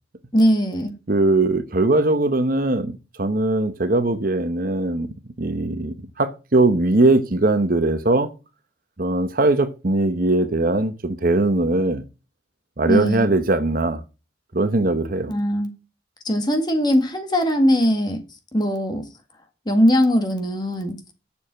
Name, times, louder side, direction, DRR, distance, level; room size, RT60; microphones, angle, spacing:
voice 1, 0.3-0.9 12.9-13.3 15.3-15.7 16.3-18.2 18.5-19.1 19.7-21.0, equal, 25° left, 1.8 m, -20 dB
voice 2, 1.1-8.3 9.0-12.0 12.8-14.0 14.5-15.3, right 2 dB, 50° right, 0.9 m, -20 dB
7.1 x 7.0 x 7.5 m
head